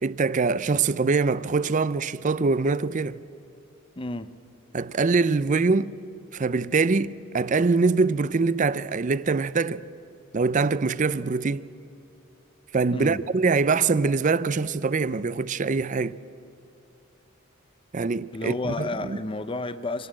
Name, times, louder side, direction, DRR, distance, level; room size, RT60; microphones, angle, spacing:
voice 1, 0.0-3.2 4.7-6.0 6.3-9.8 10.3-11.7 12.7-16.2 17.9-19.2, right 4 dB, 35° right, 0.4 m, -24 dB
voice 2, 4.0-4.3 12.9-13.2 18.3-20.1, left 2 dB, 25° left, 0.6 m, -31 dB
26.0 x 18.5 x 7.6 m
head